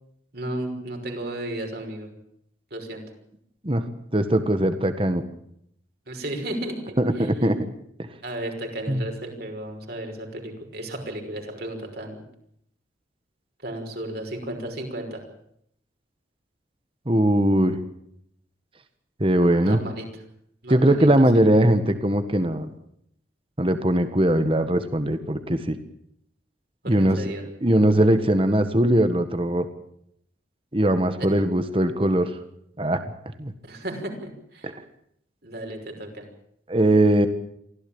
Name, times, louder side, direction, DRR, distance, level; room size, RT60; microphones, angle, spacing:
voice 1, 0.3-2.1 2.7-3.0 6.1-7.5 8.2-12.2 13.6-15.2 19.6-20.1 20.6-21.1 21.3-21.4 26.8-27.4 33.6-34.7 35.4-36.3, right 1 dB, 55° right, 3 dB, 5.7 m, -34 dB
voice 2, 4.1-5.2 7.0-7.6 8.9-9.0 17.0-17.8 19.2-19.8 20.7-22.7 23.6-25.8 26.9-27.2 27.6-29.7 30.7-32.3 32.8-33.0 33.4-33.5 34.6-34.8 36.7-37.3, right 1 dB, 30° right, 9 dB, 1.6 m, -20 dB
24.5 x 16.0 x 8.9 m, 0.72 s
head